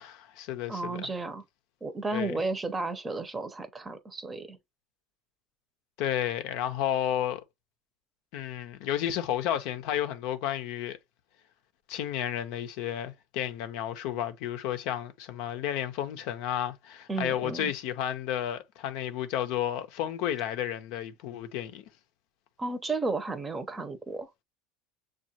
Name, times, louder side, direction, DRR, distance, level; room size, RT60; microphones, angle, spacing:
voice 1, 0.0-1.1 2.1-2.3 6.0-7.4 8.3-11.0 11.9-21.8, left 11 dB, 70° left, 0.6 m, -32 dB
voice 2, 0.7-1.4 1.8-4.6 17.1-17.7 22.6-24.3, right 3 dB, 20° right, 0.7 m, -33 dB
6.3 x 2.4 x 2.8 m
supercardioid pair, 105°, 0 cm